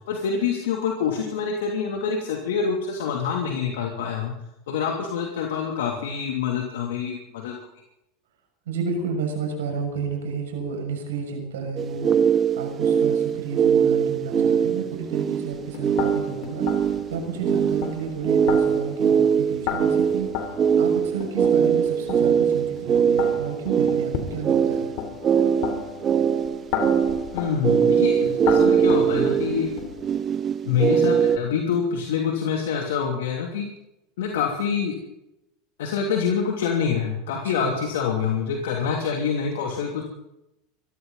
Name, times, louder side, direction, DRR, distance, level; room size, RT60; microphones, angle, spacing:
voice 1, 0.1-4.3 4.7-7.6 27.3-29.7 30.6-33.7 34.2-34.9 35.8-40.0, left 6 dB, 80° left, 1 dB, 2.9 m, -26 dB
voice 2, 8.7-12.1 12.6-20.5 20.8-24.9 37.4-37.8, right 5 dB, 85° right, 3 dB, 6.6 m, -31 dB
sound 1, 11.8-31.4, right 7 dB, 35° right, 0.9 m, -22 dB
sound 2, 15.5-30.2, left 7 dB, 65° left, 3.6 m, -34 dB
24.0 x 15.0 x 4.1 m, 0.87 s
hypercardioid pair, 105°, 0 cm